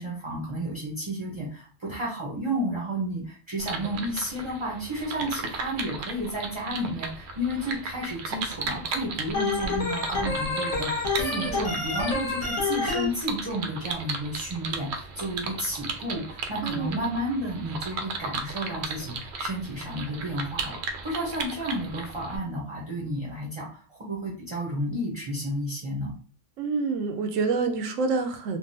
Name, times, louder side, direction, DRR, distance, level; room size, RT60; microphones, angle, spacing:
voice 1, 0.0-20.7 21.0-26.1, equal, 30° right, -3 dB, 0.6 m, -32 dB
sound 1, 3.6-22.4, right 4 dB, 65° right, 0.8 m, -36 dB
Organ, 9.3-13.1, left 3 dB, 35° left, 0.8 m, -28 dB
voice 2, 11.2-11.7 16.6-17.1 26.6-28.6, right 4 dB, 85° right, 6 dB, 1.0 m, -28 dB
3.5 x 2.2 x 2.6 m, 0.40 s
omnidirectional pair, 1.3 m